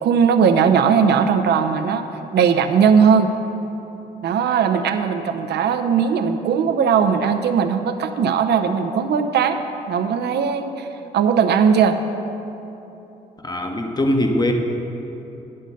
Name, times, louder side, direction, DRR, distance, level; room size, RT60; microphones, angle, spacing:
voice 1, 0.0-2.1 2.3-3.3 4.2-9.6 9.9-10.9 11.1-12.0, right 6 dB, 60° right, 8 dB, 0.6 m, -18 dB
voice 2, 13.4-14.5, left 1 dB, 20° left, 4 dB, 1.1 m, -21 dB
10.0 x 6.5 x 5.5 m, 3.0 s
hypercardioid pair, 45°, 20 cm